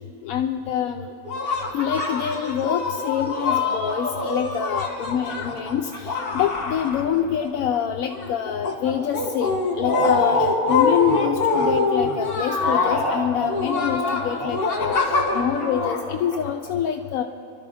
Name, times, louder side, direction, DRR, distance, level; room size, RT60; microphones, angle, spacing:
voice 1, 0.2-1.1 1.7-17.2, left 9 dB, 75° left, 5 dB, 1.0 m, -26 dB
sound 1, 1.2-7.5 7.7-16.7, left 3 dB, 40° left, 1.9 m, -24 dB
25.0 x 12.0 x 4.1 m, 2.6 s
omnidirectional pair, 1.5 m